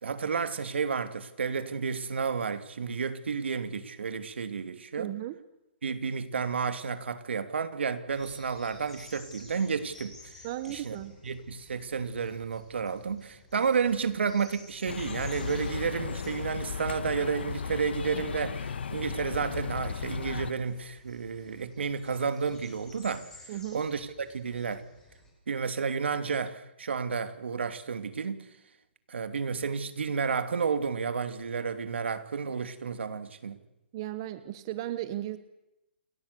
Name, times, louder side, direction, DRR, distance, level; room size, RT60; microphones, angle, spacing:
voice 1, 0.0-5.1 5.8-10.3 10.7-11.0 11.2-23.3 23.7-24.8 25.5-28.4 29.1-33.6, right 5 dB, 75° right, 2.7 m, -31 dB
voice 2, 5.0-5.3 10.4-11.2 23.5-23.8 33.9-35.4, right 14 dB, 25° right, 1.0 m, -35 dB
sound 1, 8.1-25.3, left 2 dB, 5° left, 5.7 m, -54 dB
sound 2, 14.9-20.5, left 6 dB, 65° left, 1.3 m, -35 dB
29.0 x 22.0 x 6.9 m
hypercardioid pair, 175°, 6 cm